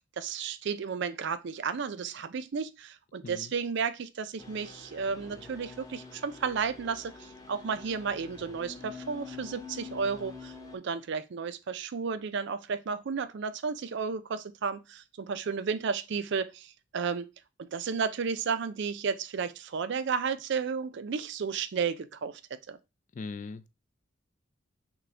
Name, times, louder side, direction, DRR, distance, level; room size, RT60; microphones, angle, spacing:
voice 1, 0.2-17.3 17.6-22.4 22.7-22.8, right 5 dB, 60° right, 0.4 m, -33 dB
sound 1, 4.4-10.8, left 4 dB, 20° left, 0.7 m, -46 dB
voice 2, 23.1-23.7, left 4 dB, 40° left, 0.3 m, -40 dB
6.0 x 2.3 x 3.3 m
head